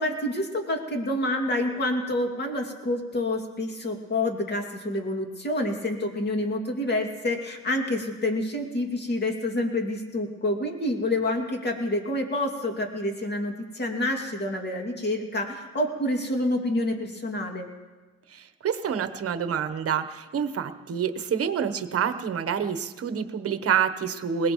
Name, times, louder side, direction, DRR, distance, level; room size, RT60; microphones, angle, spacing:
voice 1, 0.0-17.7, left 1 dB, 35° left, 3 dB, 2.4 m, -28 dB
voice 2, 18.3-24.5, right 7 dB, 50° right, 10 dB, 1.1 m, -27 dB
21.0 x 18.5 x 3.1 m, 1.3 s
cardioid pair, 90°, 30 cm